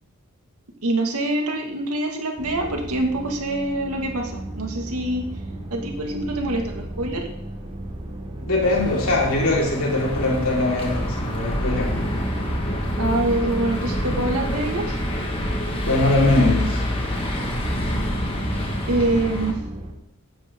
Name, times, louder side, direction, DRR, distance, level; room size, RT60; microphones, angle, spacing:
voice 1, 0.8-5.2 5.7-7.2 13.0-15.0 18.9-19.6, right 1 dB, 85° right, 2 dB, 2.2 m, -25 dB
sound 1, 2.4-19.9, right 1 dB, 25° right, 1.7 m, -34 dB
voice 2, 8.5-12.0 15.8-16.8, left 2 dB, 70° left, -3 dB, 4.4 m, -21 dB
sound 2, 8.6-19.5, equal, 25° left, 1.9 m, -27 dB
15.5 x 10.5 x 3.8 m, 0.79 s
head